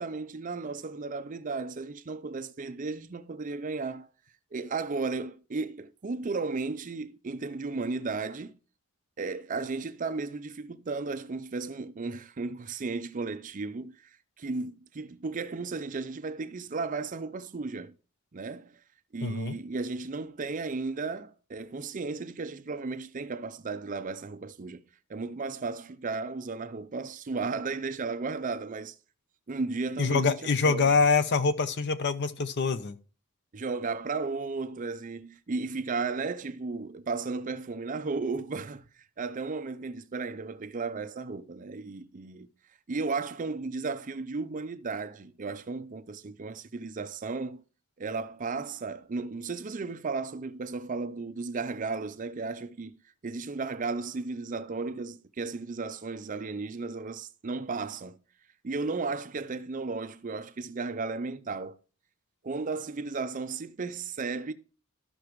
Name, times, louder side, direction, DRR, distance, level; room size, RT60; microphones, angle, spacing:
voice 1, 0.0-4.1 4.5-8.5 9.2-14.0 14.4-17.9 18.3-18.8 19.1-24.8 25.1-28.9 29.5-31.0 33.5-38.9 39.2-42.5 42.9-47.6 48.0-52.9 53.2-58.2 58.6-61.8 62.4-64.5, right 4 dB, 40° right, 0.5 m, -34 dB
voice 2, 19.2-19.6 30.0-33.0, left 4 dB, 55° left, 0.6 m, -25 dB
13.5 x 5.8 x 3.1 m
head